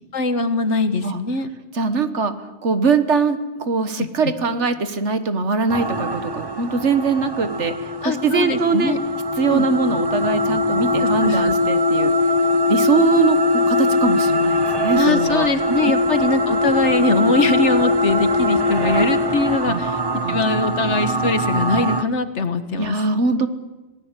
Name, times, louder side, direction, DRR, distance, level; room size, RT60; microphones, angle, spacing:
voice 1, 0.1-1.5 4.0-4.3 8.0-9.0 9.5-9.7 11.0-11.6 15.0-20.0 20.3-23.0, left 3 dB, 70° left, 10 dB, 1.7 m, -22 dB
voice 2, 1.7-2.3 2.6-8.9 9.4-12.1 12.7-13.4 13.7-15.5 19.6-20.4 22.8-23.5, right 5 dB, 75° right, 10 dB, 1.7 m, -22 dB
sound 1, 5.7-22.0, left 2 dB, 20° right, 0.9 m, -21 dB
26.0 x 18.5 x 8.2 m, 1.1 s
omnidirectional pair, 1.2 m